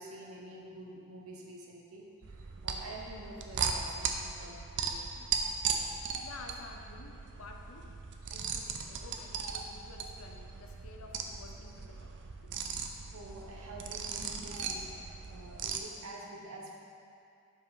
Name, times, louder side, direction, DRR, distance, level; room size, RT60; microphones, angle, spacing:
voice 1, 0.0-5.3 8.2-8.3 12.7-12.8 13.1-16.8, right 1 dB, 75° right, -2 dB, 1.1 m, -48 dB
sound 1, 2.2-15.8, right 5 dB, 55° right, 0.5 m, -38 dB
voice 2, 5.8-7.9 8.3-12.6, left 3 dB, 75° left, 2 dB, 0.8 m, -51 dB
7.8 x 5.2 x 4.0 m, 2.5 s
head